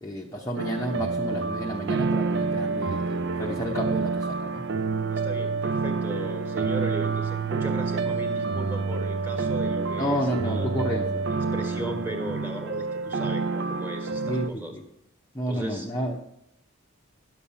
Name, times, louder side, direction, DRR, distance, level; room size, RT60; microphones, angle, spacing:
voice 1, 0.0-4.6 10.0-11.3 14.3-14.8 15.3-16.2, equal, 15° left, -1 dB, 0.8 m, -31 dB
sound 1, 0.6-14.5, right 4 dB, 55° right, 0.5 m, -28 dB
voice 2, 5.1-10.7 11.5-14.7 15.5-15.9, right 1 dB, 10° right, 4 dB, 1.5 m, -37 dB
11.0 x 7.1 x 5.6 m, 0.80 s
head